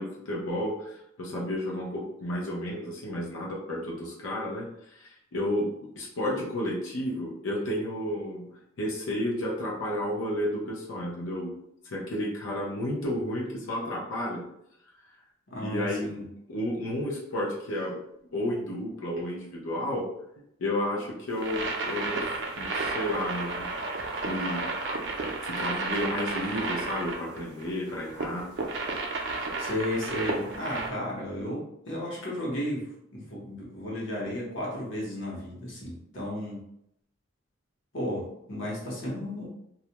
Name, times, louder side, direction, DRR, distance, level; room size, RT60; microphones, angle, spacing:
voice 1, 0.0-8.5 8.8-11.5 11.8-14.4 15.5-16.1 16.5-18.0 18.3-20.0 20.6-22.2 22.6-23.7 24.2-24.7 25.4-28.5, left 1 dB, 85° left, -4 dB, 0.6 m, -32 dB
voice 2, 15.5-16.2 29.6-36.6 37.9-39.5, left 1 dB, 70° left, -5 dB, 0.9 m, -34 dB
sound 1, 21.3-30.9, right 3 dB, 60° right, 0.4 m, -32 dB
2.3 x 2.1 x 2.8 m, 0.76 s
head